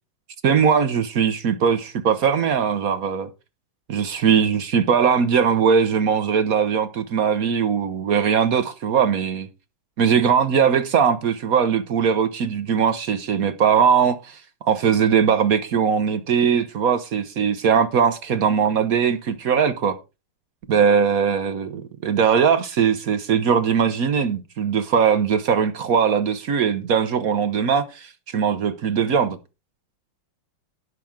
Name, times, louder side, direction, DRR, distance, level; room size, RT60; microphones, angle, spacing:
voice 1, 0.4-3.3 3.9-9.5 10.0-14.4 14.6-20.0 20.7-29.4, right 7 dB, 60° right, 1.0 m, -20 dB
17.5 x 6.0 x 3.6 m
omnidirectional pair, 2.3 m